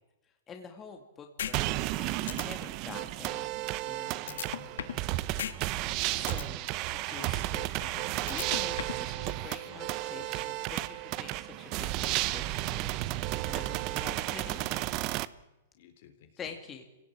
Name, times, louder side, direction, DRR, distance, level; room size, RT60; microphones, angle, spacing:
voice 1, 0.5-3.5 3.8-4.2 6.0-7.4 8.3-13.0 13.5-14.9 16.4-16.8, left 6 dB, 20° left, 4 dB, 2.3 m, -47 dB
sound 1, 1.4-1.5 1.9-2.0 2.3-2.4 4.3-5.0 5.4-5.5 5.9-6.4 8.3-9.0, left 9 dB, 80° left, 1.5 m, -35 dB
sound 2, 1.5-15.3, right 17 dB, 40° right, 0.8 m, -33 dB
voice 2, 4.2-5.2 7.2-10.5 14.1-14.6 15.7-16.3, left 8 dB, 60° left, 7 dB, 3.6 m, -52 dB
25.5 x 17.5 x 8.8 m, 1.0 s
hypercardioid pair, 145°, 0 cm